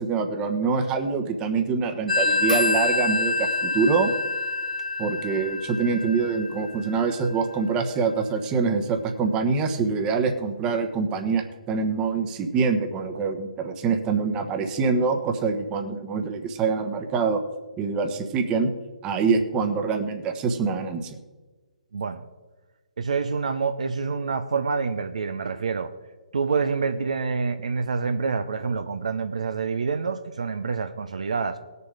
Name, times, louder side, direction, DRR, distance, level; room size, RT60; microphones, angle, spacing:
voice 1, 0.0-4.1 5.0-17.4 17.8-18.7 19.0-21.2, right 5 dB, 20° right, 5 dB, 1.2 m, -25 dB
Telephone, 2.1-7.4, left 3 dB, 75° left, 1.1 m, -27 dB
voice 2, 21.9-22.2 23.0-25.9 26.3-31.6, right 5 dB, 60° right, 9 dB, 0.8 m, -27 dB
18.5 x 6.9 x 4.9 m, 1.3 s
figure-of-eight pair, 130°, 4 cm